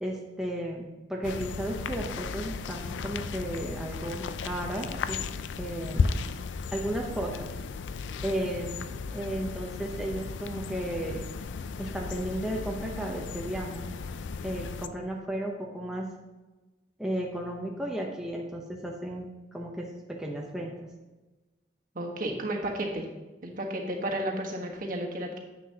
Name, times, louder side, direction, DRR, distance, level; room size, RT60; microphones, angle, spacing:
voice 1, 0.0-5.2 5.6-6.1 6.7-7.5 8.2-8.8 9.1-11.2 11.8-13.9 14.4-16.1 17.0-20.9, right 1 dB, 5° right, -2 dB, 0.8 m, -34 dB
sound 1, 1.2-14.9, left 5 dB, 75° left, 0.4 m, -35 dB
voice 2, 21.9-23.1 23.4-25.4, right 1 dB, 50° right, 0 dB, 1.4 m, -32 dB
9.9 x 7.7 x 2.8 m, 1.1 s
head